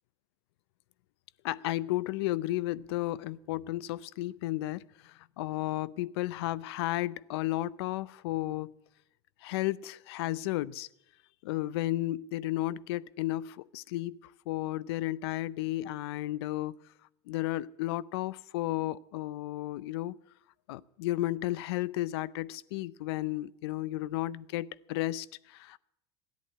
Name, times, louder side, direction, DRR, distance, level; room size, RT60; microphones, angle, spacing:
voice 1, 1.4-8.7 9.4-10.9 11.4-16.8 17.3-20.2 20.7-25.8, left 16 dB, 70° left, 0.5 m, -33 dB
14.0 x 11.0 x 8.5 m
hypercardioid pair, 90°, 14 cm